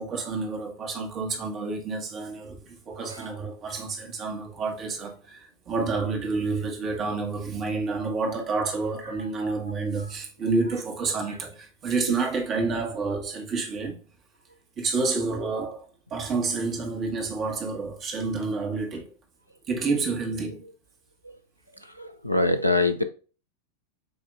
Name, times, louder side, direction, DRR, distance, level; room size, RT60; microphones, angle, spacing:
voice 1, 0.0-14.0 14.8-19.1 19.7-20.7, right 4 dB, 30° right, 1.4 m, -29 dB
voice 2, 22.0-23.0, left 2 dB, 90° left, 0.5 m, -23 dB
8.1 x 2.7 x 2.4 m
figure-of-eight pair, 90°, 0 cm